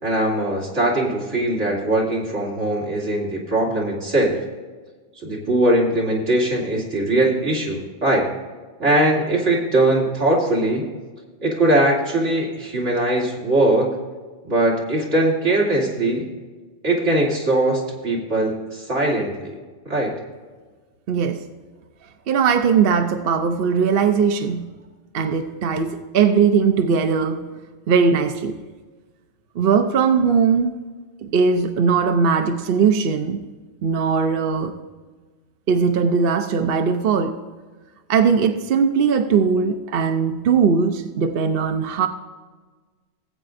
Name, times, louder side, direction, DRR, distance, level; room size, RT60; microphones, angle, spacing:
voice 1, 0.0-4.4 5.2-8.2 8.8-10.9 11.4-13.9 14.4-16.3 16.8-19.5 19.8-20.1, right 1 dB, 75° right, 2.8 m, -20 dB
voice 2, 21.1-21.5 22.3-24.7 25.1-27.4 27.9-28.6 29.6-30.8 31.2-33.5 33.8-34.8 35.7-37.4 38.1-42.1, right 6 dB, 55° right, 0.8 m, -19 dB
18.0 x 8.6 x 2.6 m
omnidirectional pair, 1.3 m